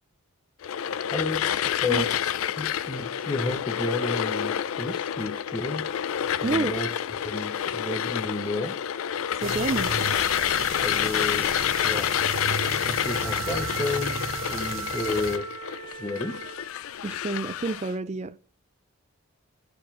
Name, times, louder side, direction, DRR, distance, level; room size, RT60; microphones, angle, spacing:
sound 1, 0.6-17.9, left 9 dB, 75° left, 0.4 m, -28 dB
voice 1, 1.1-1.5 1.8-2.1 2.4-5.9 6.4-6.9 7.2-8.8 10.8-11.5 11.8-12.1 12.8-14.2 14.5-15.5 15.8-16.4, left 2 dB, 20° left, 0.7 m, -31 dB
voice 2, 6.4-6.8 9.4-9.9 17.0-18.3, right 3 dB, 30° right, 0.4 m, -29 dB
sound 2, 9.4-15.4, right 5 dB, 65° right, 1.0 m, -35 dB
Wind instrument woodwind instrument, 12.9-16.7, right 4 dB, 5° right, 2.2 m, -37 dB
11.0 x 4.8 x 3.7 m
head